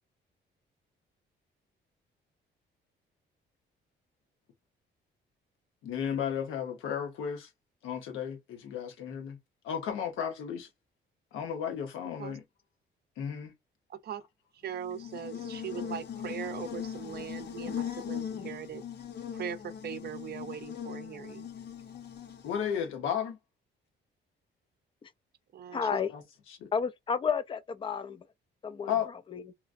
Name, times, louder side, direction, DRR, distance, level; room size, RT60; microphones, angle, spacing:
voice 1, 5.8-7.5 7.8-9.4 9.6-10.7 11.3-12.4 13.2-13.5 22.4-23.4 26.1-26.2 26.5-26.7 28.9-29.1, left 8 dB, 90° left, 1.0 m, -34 dB
voice 2, 13.9-14.2 14.5-18.8 19.3-21.5 25.5-26.0, right 8 dB, 55° right, 0.5 m, -40 dB
Buzz, 14.7-22.8, left 8 dB, 55° left, 0.7 m, -40 dB
voice 3, 25.7-26.1 26.7-28.2 28.6-28.9 29.3-29.4, left 6 dB, 25° left, 0.4 m, -31 dB
2.9 x 2.4 x 2.5 m
cardioid pair, 90°, 20 cm